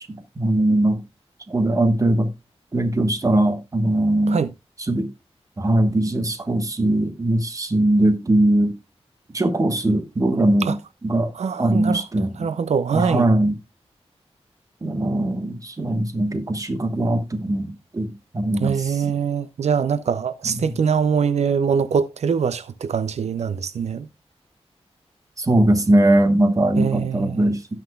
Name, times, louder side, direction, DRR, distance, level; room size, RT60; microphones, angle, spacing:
voice 1, 0.4-1.0 1.5-2.3 2.7-4.4 4.8-5.1 5.6-8.7 9.3-10.7 11.0-11.3 11.6-12.5 12.9-13.5 14.8-19.1 20.4-20.7 25.4-27.8, right 1 dB, 30° right, 1.3 m, -20 dB
voice 2, 11.3-12.0 12.4-13.3 18.6-24.1 26.8-27.4, right 6 dB, 85° right, 0.5 m, -23 dB
17.0 x 5.8 x 2.3 m
wide cardioid pair, 125°, 11 cm